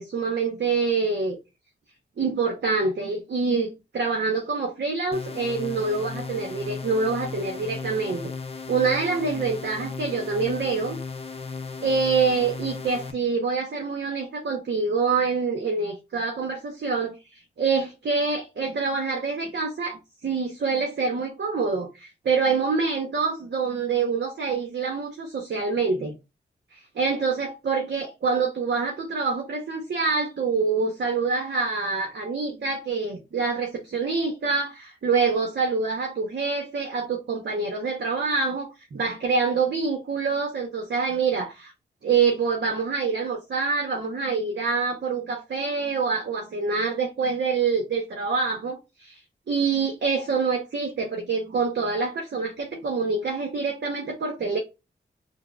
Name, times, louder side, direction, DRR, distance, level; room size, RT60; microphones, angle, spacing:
voice 1, 0.0-1.4 2.2-8.2 8.7-11.0 11.8-17.2 17.6-26.1 26.7-41.7 42.0-49.2 49.5-54.6, right 4 dB, 65° right, 0.8 m, -26 dB
sound 1, 5.1-13.1, left 4 dB, 30° left, 0.6 m, -36 dB
4.5 x 2.0 x 2.3 m
cardioid pair, 45°, 19 cm